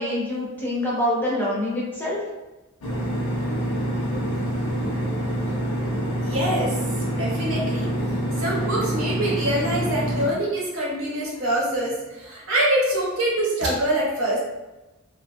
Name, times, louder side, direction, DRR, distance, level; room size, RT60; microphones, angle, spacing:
voice 1, 0.0-2.2, left 1 dB, 10° left, -6 dB, 0.5 m, -25 dB
sound 1, 2.8-10.3, right 1 dB, 75° left, 0.6 m, -26 dB
voice 2, 6.2-7.9 8.4-14.4, right 1 dB, 65° right, -4 dB, 0.8 m, -25 dB
2.7 x 2.2 x 2.6 m, 1.1 s
head